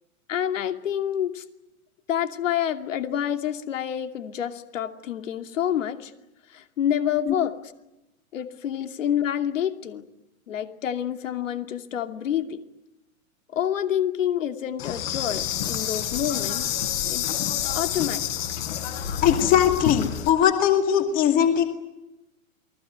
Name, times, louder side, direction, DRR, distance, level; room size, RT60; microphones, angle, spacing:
voice 1, 0.3-1.4 2.1-6.1 6.5-7.5 8.3-10.0 10.5-12.6 13.5-16.7 17.0-18.2, left 10 dB, 65° left, 8 dB, 2.7 m, -28 dB
Insect, 14.8-20.3, left 10 dB, 45° left, 5.5 m, -28 dB
voice 2, 19.2-21.7, left 9 dB, 20° left, 7 dB, 2.4 m, -20 dB
29.0 x 21.0 x 9.5 m, 0.94 s
hypercardioid pair, 165°, 41 cm